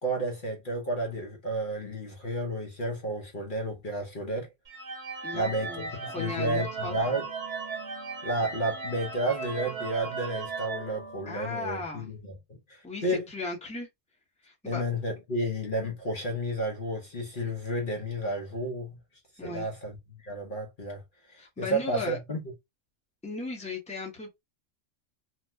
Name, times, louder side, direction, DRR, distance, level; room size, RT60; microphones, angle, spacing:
voice 1, 0.0-4.5 5.3-7.3 8.2-13.2 14.6-19.0 19.4-21.0 21.3-22.4, right 1 dB, 50° left, 0.8 m, -32 dB
sound 1, 4.7-11.7, right 4 dB, 55° right, 1.3 m, -37 dB
voice 2, 5.2-6.9 11.3-12.1 12.8-13.9 14.4-14.8 19.4-19.7 21.4-22.2 23.2-24.4, left 3 dB, 5° left, 0.8 m, -36 dB
2.9 x 2.0 x 3.3 m
omnidirectional pair, 1.3 m